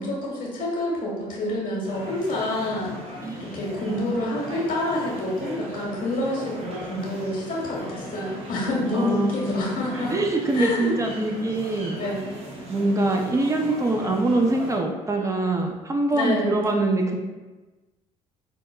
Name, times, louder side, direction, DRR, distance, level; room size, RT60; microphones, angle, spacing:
voice 1, 0.0-3.1 3.4-10.1 10.5-10.9 11.9-12.3 16.1-16.6, left 1 dB, 65° left, -3 dB, 1.3 m, -28 dB
sound 1, 1.8-14.8, right 1 dB, 40° right, 1.1 m, -38 dB
voice 2, 3.8-4.6 8.9-9.6 10.1-12.0 12.7-17.2, right 2 dB, 20° right, 2 dB, 0.5 m, -24 dB
5.2 x 2.1 x 2.2 m, 1.2 s
supercardioid pair, 75°, 16 cm